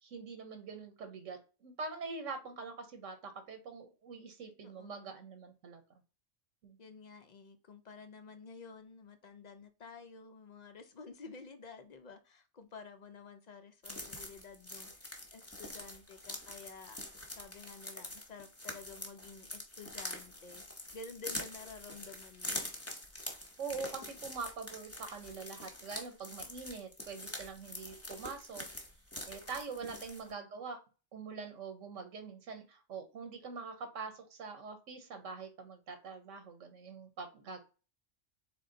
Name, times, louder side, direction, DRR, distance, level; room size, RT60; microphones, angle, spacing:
voice 1, 0.0-5.8 6.6-6.8 23.6-28.7 29.3-30.8 31.1-37.6, right 4 dB, 90° right, 1.2 m, -44 dB
voice 2, 4.6-5.1 6.8-17.0 17.3-20.6 20.9-22.6 29.8-30.4, left 4 dB, 55° left, 0.5 m, -51 dB
sound 1, 13.8-30.3, left 1 dB, 15° left, 0.8 m, -45 dB
3.8 x 3.5 x 3.8 m
omnidirectional pair, 1.3 m